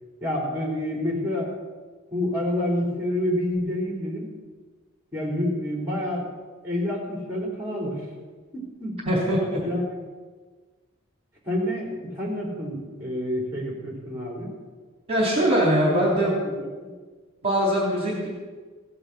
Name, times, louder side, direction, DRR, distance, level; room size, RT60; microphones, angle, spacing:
voice 1, 0.2-1.5 2.1-4.3 5.1-6.3 6.6-8.1 8.5-9.0 9.6-9.9 11.5-14.5 15.8-16.9, left 1 dB, 10° right, -1 dB, 3.7 m, -28 dB
voice 2, 9.0-9.6 15.1-16.3 17.4-18.3, equal, 30° right, -3 dB, 3.4 m, -22 dB
16.5 x 10.0 x 6.1 m, 1.4 s
head